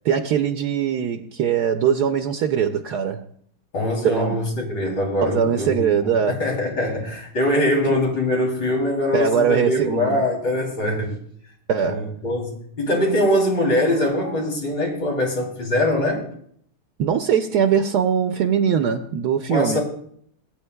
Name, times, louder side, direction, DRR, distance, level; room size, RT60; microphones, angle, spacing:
voice 1, 0.0-3.3 4.0-4.4 5.2-6.5 9.1-10.2 11.7-12.1 17.0-19.8, right 8 dB, 70° right, 1.1 m, -21 dB
voice 2, 3.7-11.1 11.8-16.2 19.5-19.8, left 1 dB, 90° left, 3.8 m, -22 dB
21.5 x 8.7 x 2.2 m
omnidirectional pair, 1.9 m